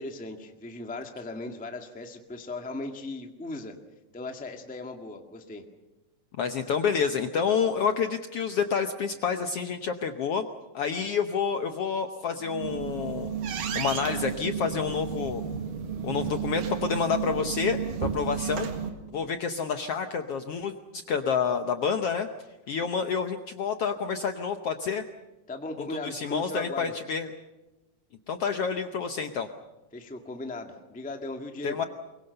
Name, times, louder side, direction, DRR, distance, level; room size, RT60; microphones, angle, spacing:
voice 1, 0.0-3.7 4.1-5.6 25.5-26.9 29.9-31.8, left 2 dB, 5° left, 4 dB, 0.8 m, -37 dB
voice 2, 6.4-10.4 10.7-13.3 13.7-15.4 16.0-18.7 19.1-22.3 22.7-25.0 26.0-27.3 28.3-29.5 31.6-31.8, left 6 dB, 65° left, 7 dB, 1.5 m, -28 dB
sound 1, 12.4-18.9, right 7 dB, 85° right, 3.6 m, -32 dB
24.0 x 22.5 x 6.8 m, 1.1 s
omnidirectional pair, 3.7 m